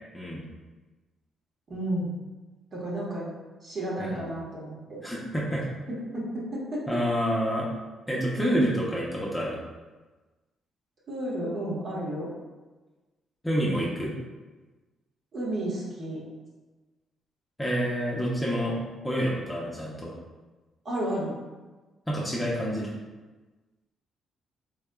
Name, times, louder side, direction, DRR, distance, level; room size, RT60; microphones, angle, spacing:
voice 1, 1.7-2.2 2.7-3.3 3.6-5.0 6.1-6.8 11.1-12.3 15.3-16.2 20.8-21.4, right 1 dB, 50° right, -5 dB, 1.3 m, -32 dB
voice 2, 5.0-5.6 6.9-7.7 8.1-9.6 13.4-14.1 17.6-18.8 19.0-20.2 22.1-22.9, equal, 5° left, -4 dB, 0.8 m, -28 dB
4.0 x 3.4 x 2.3 m, 1.2 s
cardioid pair, 90°, 0 cm